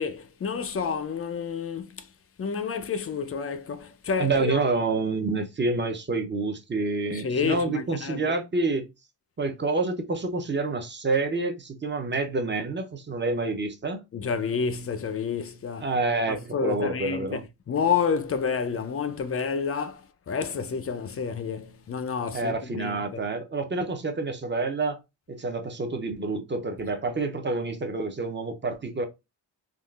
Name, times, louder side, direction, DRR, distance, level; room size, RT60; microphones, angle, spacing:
voice 1, 0.0-2.1 2.4-4.6 7.1-8.2 14.1-15.9 16.3-17.4 17.7-23.2, left 6 dB, 35° left, 0.4 m, -29 dB
voice 2, 4.2-8.9 9.4-14.0 15.8-17.4 22.3-25.0 25.3-29.0, right 3 dB, 25° right, 0.5 m, -28 dB
3.6 x 2.3 x 2.3 m
wide cardioid pair, 110°, 45 cm